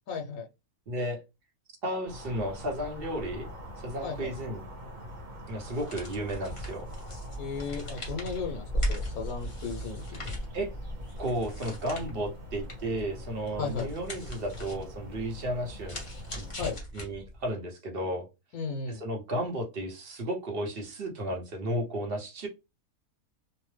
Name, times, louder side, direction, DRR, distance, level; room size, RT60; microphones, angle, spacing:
voice 1, 0.1-0.5 4.0-4.3 7.4-10.3 13.6-13.9 16.6-16.8 18.5-19.0, left 5 dB, 80° left, 2 dB, 1.1 m, -35 dB
voice 2, 0.9-1.2 1.8-3.5 3.8-4.6 5.5-6.8 10.5-10.7 11.2-16.0 16.4-16.5 16.9-18.3 18.9-22.5, right 1 dB, 45° right, 1 dB, 0.9 m, -33 dB
sound 1, 2.0-16.8, left 1 dB, 70° right, 1.4 m, -42 dB
sound 2, 5.6-17.5, right 1 dB, 25° left, 0.8 m, -39 dB
2.9 x 2.0 x 3.1 m, 0.25 s
omnidirectional pair, 1.5 m